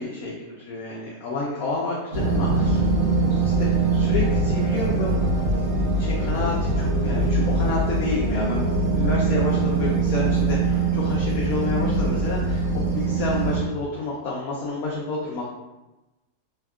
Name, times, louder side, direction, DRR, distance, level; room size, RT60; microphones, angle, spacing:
voice 1, 0.0-2.8 3.2-5.3 6.0-8.7 8.9-15.5, left 3 dB, 70° left, -5 dB, 0.9 m, -29 dB
sound 1, 2.1-13.6, right 3 dB, 65° right, 1.2 m, -22 dB
3.4 x 2.3 x 2.3 m, 1.0 s
omnidirectional pair, 1.7 m